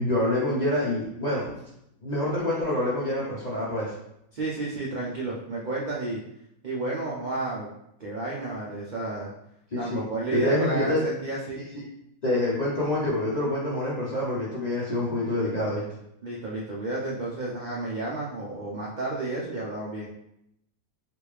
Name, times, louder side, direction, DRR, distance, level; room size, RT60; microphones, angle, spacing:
voice 1, 0.0-1.5 2.0-3.9 9.7-10.0 10.3-11.0 11.7-11.8 12.2-15.8, left 1 dB, 45° left, -7 dB, 0.6 m, -26 dB
voice 2, 4.3-6.2 6.6-7.7 8.0-9.3 9.8-11.6 16.2-20.1, right 2 dB, 60° right, -5 dB, 0.4 m, -31 dB
3.4 x 2.6 x 3.2 m, 0.78 s
omnidirectional pair, 1.6 m